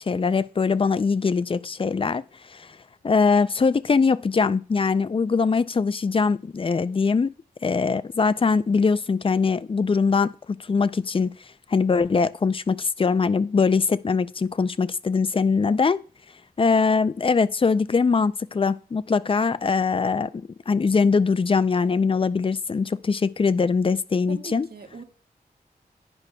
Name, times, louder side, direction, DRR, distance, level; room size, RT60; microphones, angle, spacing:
voice 1, 0.0-2.2 2.5-2.7 3.0-7.3 7.6-10.3 10.6-11.3 11.7-16.0 16.6-24.7, left 4 dB, 35° left, 0.4 m, -22 dB
voice 2, 24.3-25.0, right 4 dB, 75° right, 1.6 m, -40 dB
11.0 x 9.7 x 2.2 m
wide cardioid pair, 85°, 16 cm